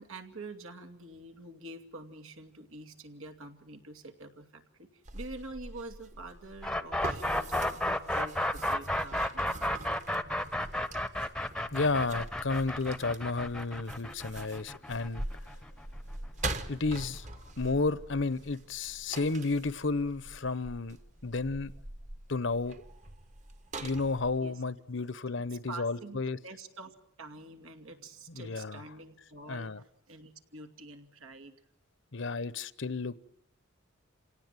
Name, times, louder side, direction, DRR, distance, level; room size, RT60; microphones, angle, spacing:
voice 1, 0.0-9.6 17.3-17.5 24.4-24.6 25.5-31.6, right 2 dB, 80° right, 6 dB, 2.6 m, -47 dB
sound 1, 5.1-24.4, right 2 dB, 35° right, 1.4 m, -44 dB
sound 2, 6.6-16.5, left 1 dB, 5° left, 0.9 m, -32 dB
voice 2, 11.7-15.5 16.7-17.3 17.6-21.0 21.2-21.7 22.3-22.7 23.8-26.4 28.3-28.8 29.5-29.8 32.1-33.2, left 3 dB, 60° left, 17 dB, 0.9 m, -32 dB
27.5 x 18.0 x 9.1 m, 0.73 s
head